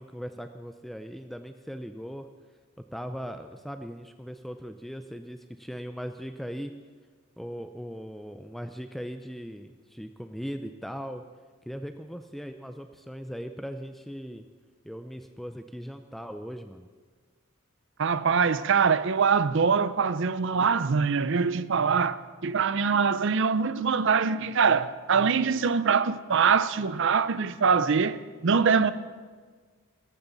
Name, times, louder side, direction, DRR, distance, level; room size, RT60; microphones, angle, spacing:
voice 1, 0.0-2.3 2.9-6.7 7.4-11.2 11.6-14.4 14.8-16.9, equal, ahead, 0.4 m, -39 dB
voice 2, 18.0-28.9, right 5 dB, 60° right, 0.5 m, -23 dB
17.0 x 14.0 x 4.0 m
head